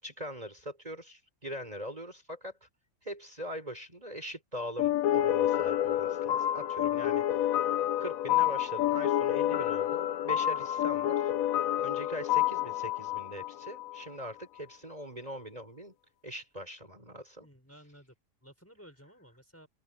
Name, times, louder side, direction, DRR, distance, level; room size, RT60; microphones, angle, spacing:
voice 1, 0.0-2.7 3.0-7.6 8.0-11.3 11.8-15.9 16.2-17.5, equal, 25° right, 5.3 m, -42 dB
sound 1, 4.8-14.0, left 12 dB, 85° left, 1.1 m, -29 dB
voice 2, 17.4-19.7, equal, 10° left, 6.0 m, -55 dB
open air
omnidirectional pair, 1.4 m